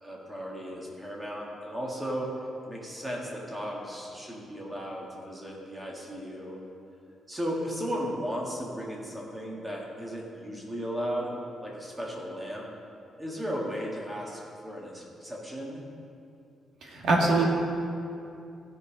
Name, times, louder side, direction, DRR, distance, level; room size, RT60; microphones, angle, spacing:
voice 1, 0.0-2.3 2.7-6.6 7.3-11.3 11.6-12.6 13.2-15.8, equal, 10° right, -3 dB, 1.7 m, -35 dB
voice 2, 16.8-17.4, right 2 dB, 60° right, -1 dB, 1.9 m, -23 dB
15.0 x 5.5 x 5.0 m, 2.6 s
cardioid pair, 160°, 0 cm